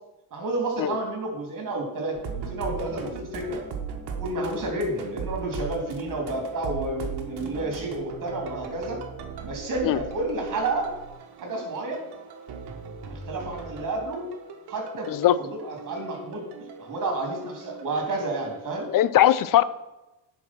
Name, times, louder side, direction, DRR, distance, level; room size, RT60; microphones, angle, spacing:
voice 1, 0.3-3.6 4.2-9.0 9.4-10.9 11.4-12.1 13.1-14.3 14.7-15.1 15.4-16.5 16.8-18.9, right 2 dB, 45° right, 2 dB, 3.2 m, -30 dB
sound 1, 2.2-18.7, right 6 dB, 65° right, 1.6 m, -39 dB
voice 2, 18.9-19.6, left 12 dB, 50° left, 16 dB, 0.6 m, -19 dB
10.5 x 5.0 x 6.1 m, 0.99 s
cardioid pair, 105°, 42 cm